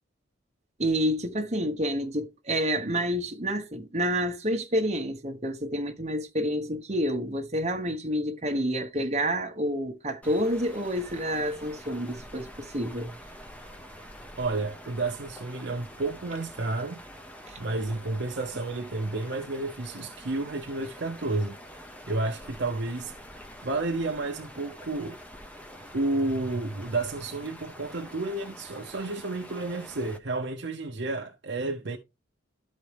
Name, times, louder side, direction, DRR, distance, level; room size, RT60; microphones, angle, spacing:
voice 1, 0.8-13.2 17.5-17.6, equal, 35° right, 1.1 m, -29 dB
sound 1, 10.2-30.2, equal, 5° left, 0.7 m, -46 dB
voice 2, 14.4-17.0 17.6-21.6 22.1-23.1 23.6-25.2 25.9-32.0, right 2 dB, 60° right, 0.7 m, -31 dB
12.5 x 4.2 x 3.4 m
head